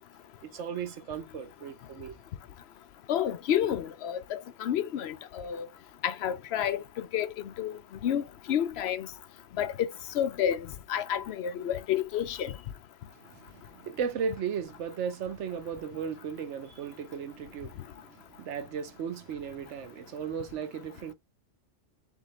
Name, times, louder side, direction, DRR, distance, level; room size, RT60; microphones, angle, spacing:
voice 1, 0.5-2.1 13.2-21.1, right 7 dB, 80° right, 1.1 m, -36 dB
voice 2, 3.1-5.7 6.0-6.8 7.1-7.3 7.6-9.1 9.6-9.7 10.1-12.5, left 10 dB, 70° left, 0.8 m, -30 dB
3.8 x 3.6 x 3.1 m
omnidirectional pair, 1.2 m